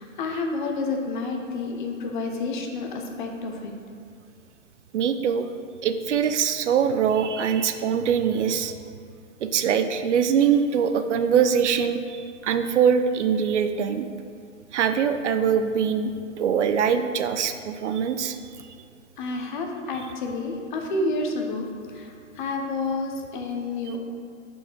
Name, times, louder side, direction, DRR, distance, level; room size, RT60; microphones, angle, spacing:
voice 1, 0.0-3.7 19.2-21.7 21.9-24.0, left 3 dB, 40° left, 2 dB, 0.8 m, -29 dB
voice 2, 4.9-5.5 5.8-8.8 9.4-14.1 14.7-16.1 16.4-18.4, right 7 dB, 60° right, 9 dB, 0.5 m, -23 dB
7.1 x 4.5 x 4.5 m, 2.3 s
hypercardioid pair, 150°, 39 cm